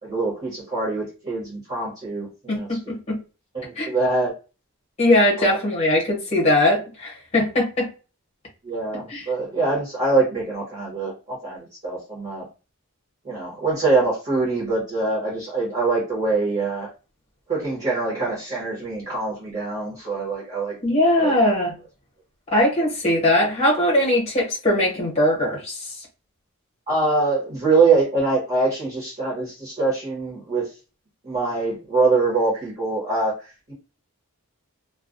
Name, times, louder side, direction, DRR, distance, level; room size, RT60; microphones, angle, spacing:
voice 1, 0.0-2.7 3.5-4.3 5.4-5.6 8.6-12.4 13.2-16.9 17.5-20.8 21.2-21.3 26.9-30.7 31.2-33.7, right 3 dB, 35° right, 1.0 m, -24 dB
voice 2, 2.5-3.2 3.8-4.0 5.0-7.9 9.1-9.3 20.8-21.7 22.5-25.9, left 1 dB, 30° left, 0.9 m, -20 dB
2.3 x 2.2 x 2.5 m
head